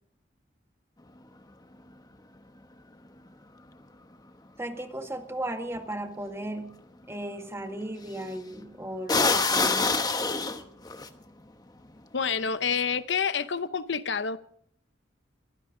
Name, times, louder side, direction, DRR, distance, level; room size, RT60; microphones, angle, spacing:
voice 1, 4.6-6.8 7.1-10.1, right 1 dB, 15° right, 1.9 m, -36 dB
sound 1, 5.7-5.8 8.1-8.3 9.1-11.1, left 3 dB, 20° left, 1.1 m, -25 dB
voice 2, 12.1-14.4, left 6 dB, 70° left, 0.8 m, -28 dB
23.5 x 15.5 x 3.9 m
head